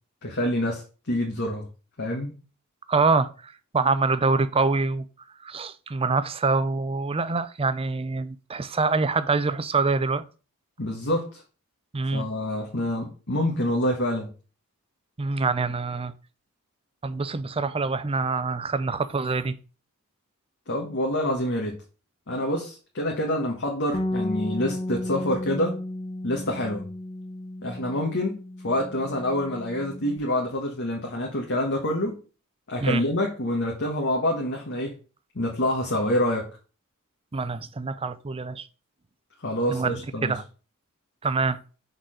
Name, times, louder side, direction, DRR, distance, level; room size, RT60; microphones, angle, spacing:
voice 1, 0.2-1.7 2.0-2.3 10.8-11.4 12.1-14.3 20.7-21.8 22.3-25.8 26.2-26.9 27.6-32.2 32.7-35.0 35.3-36.5 39.4-40.3, left 1 dB, 55° left, 1.4 m, -27 dB
voice 2, 2.9-5.0 5.4-10.2 11.9-12.2 15.2-16.1 17.0-19.6 32.8-33.0 37.3-38.7 39.7-40.4 41.2-41.6, right 4 dB, 25° right, 0.5 m, -25 dB
Bass guitar, 23.9-30.2, left 1 dB, 25° left, 0.6 m, -34 dB
6.3 x 4.1 x 6.3 m
head